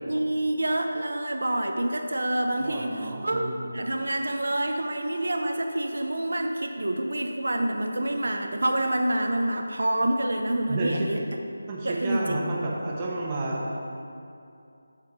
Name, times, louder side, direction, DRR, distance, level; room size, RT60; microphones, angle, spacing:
voice 1, 0.1-11.2 11.8-12.6, right 1 dB, 80° right, 4 dB, 0.6 m, -27 dB
voice 2, 2.6-3.7 10.7-11.1 11.7-13.6, right 2 dB, 20° right, -4 dB, 0.9 m, -31 dB
7.2 x 3.7 x 6.1 m, 2.6 s
figure-of-eight pair, 170°, 0 cm